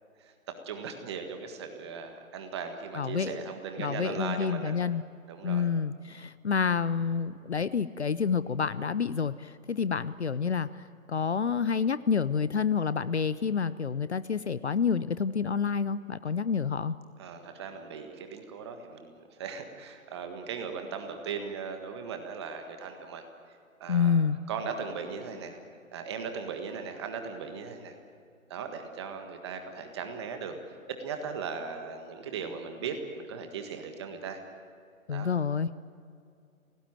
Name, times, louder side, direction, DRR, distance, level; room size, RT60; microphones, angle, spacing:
voice 1, 0.6-4.7 5.3-5.6 17.2-23.2 23.8-24.2 24.5-25.6 25.9-27.9 28.5-30.5 30.9-34.4 35.1-35.3, right 6 dB, 20° right, 6 dB, 1.6 m, -38 dB
voice 2, 2.9-3.4 3.8-5.0 5.4-17.0 23.9-24.4 35.1-35.7, left 6 dB, 50° left, 16 dB, 0.7 m, -28 dB
28.0 x 18.0 x 9.0 m, 2.4 s
figure-of-eight pair, 150°, 42 cm